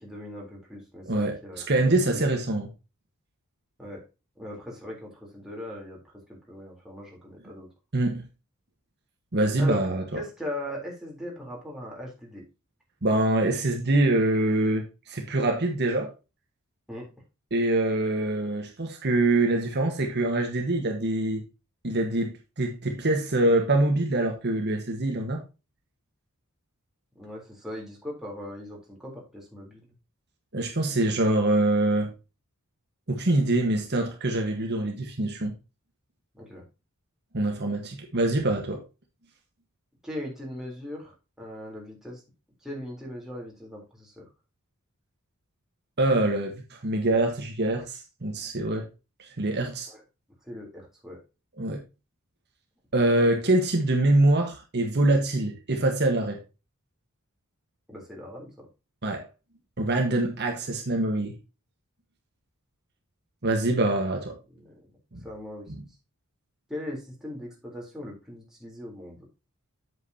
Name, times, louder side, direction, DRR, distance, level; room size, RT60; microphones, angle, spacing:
voice 1, 0.0-2.6 3.8-4.0 4.4-7.7 9.6-9.8 10.1-12.4 16.9-17.1 27.2-29.9 36.3-36.6 40.0-41.1 41.4-42.2 42.6-44.3 49.9-50.0 50.4-51.2 57.9-58.7 64.6-64.8 65.2-65.7 66.7-69.2, left 1 dB, ahead, 3.6 m, -39 dB
voice 2, 1.1-1.4 1.7-2.7 7.9-8.2 9.3-10.2 13.0-16.1 17.5-21.4 21.8-25.4 30.5-32.1 33.1-35.5 37.3-38.8 46.0-48.9 49.2-49.9 51.6-51.8 52.9-56.4 59.0-59.3 59.8-61.4 63.4-64.3 65.8-65.9, right 2 dB, 50° right, 1.5 m, -24 dB
8.2 x 7.8 x 2.8 m
head